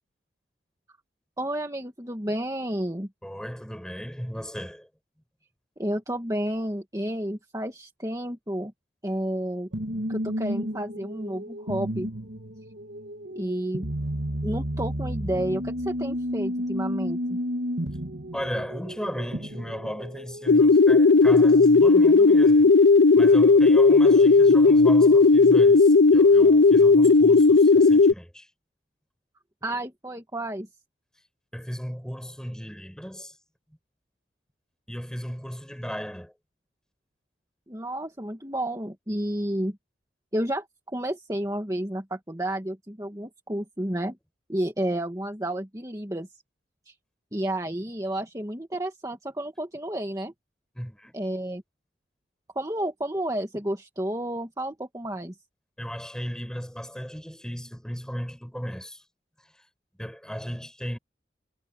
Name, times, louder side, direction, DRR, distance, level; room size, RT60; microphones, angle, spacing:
voice 1, 1.4-3.1 5.8-8.7 9.0-9.7 10.1-12.1 13.4-13.9 14.4-17.4 29.6-30.7 37.7-39.8 40.3-44.2 44.5-46.3 46.9-47.0 47.3-50.3 51.1-51.6 52.6-55.3, right 1 dB, 20° right, 2.1 m, -31 dB
voice 2, 3.2-4.9 18.3-22.7 23.1-28.5 31.5-33.4 34.9-36.3 50.8-51.1 55.8-59.0 59.4-59.7 60.0-61.0, equal, 5° left, 6.0 m, -35 dB
sound 1, 9.7-20.5, equal, 80° right, 2.7 m, -32 dB
sound 2, 20.5-28.1, left 4 dB, 85° left, 0.5 m, -15 dB
head